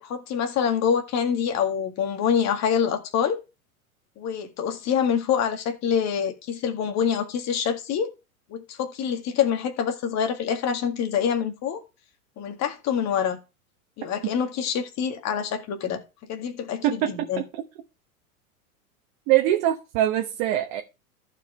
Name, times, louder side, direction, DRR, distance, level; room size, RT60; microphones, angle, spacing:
voice 1, 0.0-3.4 4.2-8.1 8.5-11.8 12.4-13.4 14.0-16.0 16.3-17.4, left 7 dB, 40° left, 1.9 m, -26 dB
voice 2, 16.8-17.6 19.3-20.8, right 13 dB, 45° right, 1.3 m, -23 dB
14.5 x 4.9 x 3.4 m
hypercardioid pair, 95°, 43 cm